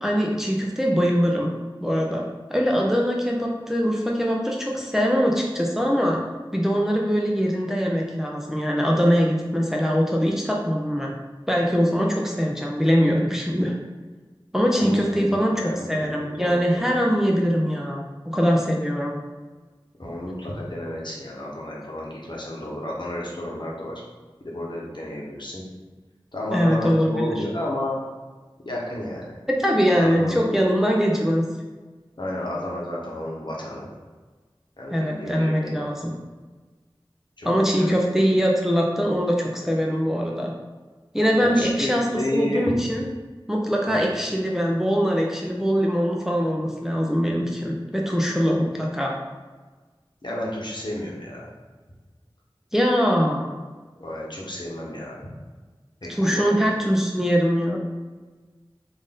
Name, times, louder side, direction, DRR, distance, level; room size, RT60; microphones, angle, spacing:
voice 1, 0.0-1.5 1.8-6.2 6.5-11.2 11.5-13.7 14.5-15.6 15.9-19.2 26.5-27.4 29.5-31.4 34.9-36.1 37.4-40.5 41.1-42.1 42.3-43.0 43.5-49.1 52.7-53.5 56.1-57.8, equal, 5° right, -2 dB, 0.5 m, -22 dB
voice 2, 14.8-16.9 20.0-24.0 24.4-25.6 26.3-28.0 28.6-29.4 30.0-30.3 32.2-33.9 34.8-36.1 37.4-38.1 41.4-42.6 43.9-44.0 50.2-51.5 54.0-55.2 56.0-56.7, left 1 dB, 60° left, -4 dB, 1.0 m, -31 dB
3.7 x 2.5 x 3.7 m, 1.3 s
wide cardioid pair, 45°, 9 cm